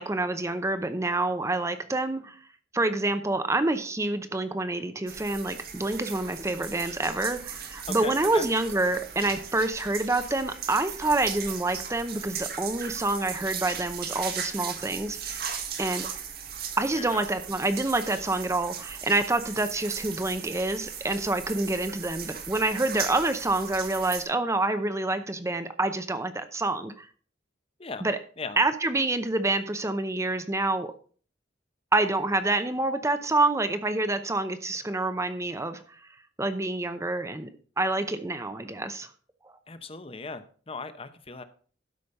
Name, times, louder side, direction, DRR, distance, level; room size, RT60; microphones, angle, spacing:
voice 1, 0.0-2.4 2.7-15.4 15.8-16.1 16.8-27.1 28.0-28.2 28.6-30.9 31.9-36.0 36.4-37.5 37.8-39.1 39.4-39.5, right 2 dB, 15° right, 9 dB, 0.7 m, -27 dB
sound 1, 5.1-24.2, right 7 dB, 60° right, 1.6 m, -37 dB
voice 2, 7.9-8.5 16.9-17.2 27.8-28.0 28.4-28.6 39.7-41.4, left 4 dB, 30° left, 11 dB, 0.8 m, -38 dB
12.5 x 5.2 x 5.3 m, 0.44 s
head